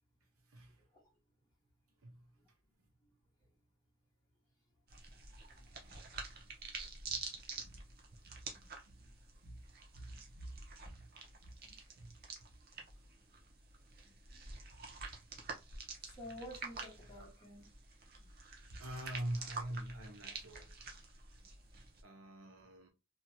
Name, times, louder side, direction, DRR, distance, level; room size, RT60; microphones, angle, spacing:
voice 1, 0.5-0.8 2.0-2.4 6.4-6.5 7.0-7.3 7.6-7.9 8.2-8.5 8.9-9.1 9.4-9.6 9.9-11.1 11.4-11.6 11.9-12.2 13.0-13.1 16.2-16.3 18.8-20.8 22.0-22.9, right 1 dB, 80° right, 0.8 m, -46 dB
sound 1, 4.9-22.0, right 4 dB, 45° right, 0.7 m, -49 dB
voice 2, 5.5-6.0 8.5-8.7 11.6-11.7 14.0-14.4 16.0-17.6 18.2-18.3, equal, 15° left, 1.0 m, -52 dB
2.9 x 2.8 x 2.2 m
head